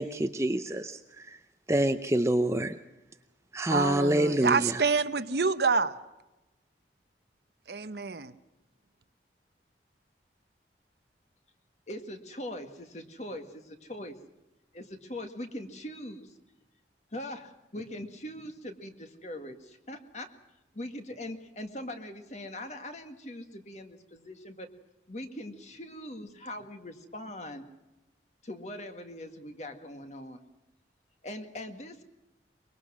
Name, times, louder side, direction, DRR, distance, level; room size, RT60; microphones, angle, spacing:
voice 1, 0.0-1.4 1.7-2.8 3.5-4.8, right 1 dB, 15° right, 0.7 m, -27 dB
voice 2, 3.7-5.9 7.7-8.3, right 4 dB, 65° right, 0.9 m, -27 dB
voice 3, 11.9-14.2 14.7-16.3 17.1-20.3 20.7-24.7 25.1-27.7 28.4-30.4 31.2-32.0, left 1 dB, 40° left, 1.9 m, -41 dB
24.0 x 22.0 x 6.2 m
head